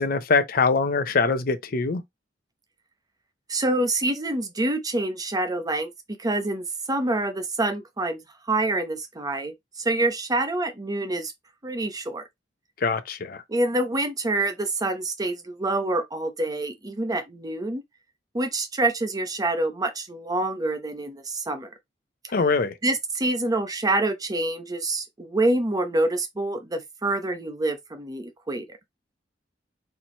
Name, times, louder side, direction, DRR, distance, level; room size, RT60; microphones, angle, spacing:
voice 1, 0.0-2.0 12.8-13.4 22.3-22.8, left 4 dB, 55° left, 0.6 m, -23 dB
voice 2, 3.5-5.9 6.2-8.2 8.5-11.3 11.6-12.2 13.5-17.8 18.3-21.7 22.8-28.6, right 2 dB, 20° right, 0.8 m, -26 dB
4.5 x 2.4 x 4.2 m
head